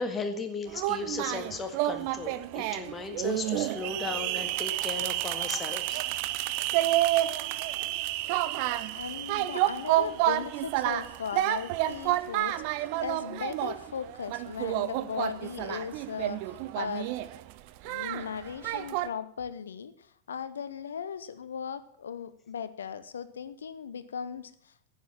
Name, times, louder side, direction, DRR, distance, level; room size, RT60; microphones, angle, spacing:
voice 1, 0.0-6.0, left 4 dB, 20° left, 6 dB, 1.8 m, -36 dB
sound 1, 0.7-19.1, right 15 dB, 45° right, 0.7 m, -30 dB
voice 2, 8.9-17.4 17.8-24.9, left 7 dB, 65° left, 14 dB, 0.9 m, -38 dB
11.0 x 9.4 x 7.5 m, 0.64 s
figure-of-eight pair, 90°, 0 cm